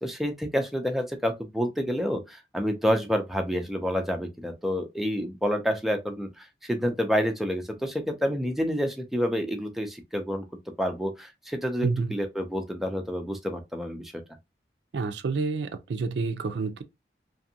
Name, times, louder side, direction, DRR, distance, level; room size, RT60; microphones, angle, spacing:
voice 1, 0.0-10.5 10.8-14.2, equal, ahead, 0.4 m, -28 dB
voice 2, 11.8-12.1 14.9-16.8, right 4 dB, 80° right, 0.4 m, -28 dB
2.6 x 2.5 x 2.6 m
head